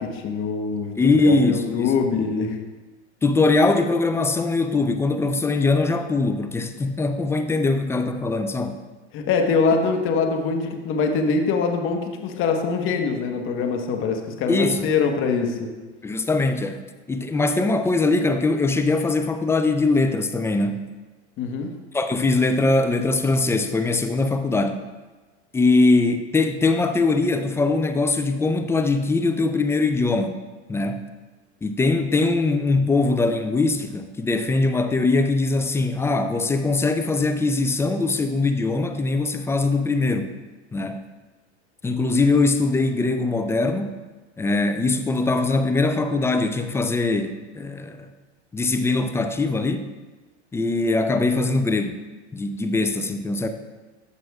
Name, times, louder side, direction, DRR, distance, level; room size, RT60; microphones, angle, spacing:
voice 1, 0.0-2.6 9.1-15.7 21.4-21.7, left 5 dB, 40° left, 3 dB, 1.1 m, -23 dB
voice 2, 1.0-1.9 3.2-8.8 14.5-14.8 16.0-16.8 17.1-20.9 21.9-24.9 25.5-30.4 30.7-31.1 31.6-40.3 40.7-41.1 41.8-44.0 44.4-48.1 48.5-49.9 50.5-52.0 52.3-53.5, left 3 dB, 10° left, 7 dB, 0.3 m, -21 dB
13.5 x 6.2 x 2.3 m, 1.3 s
hypercardioid pair, 100°, 34 cm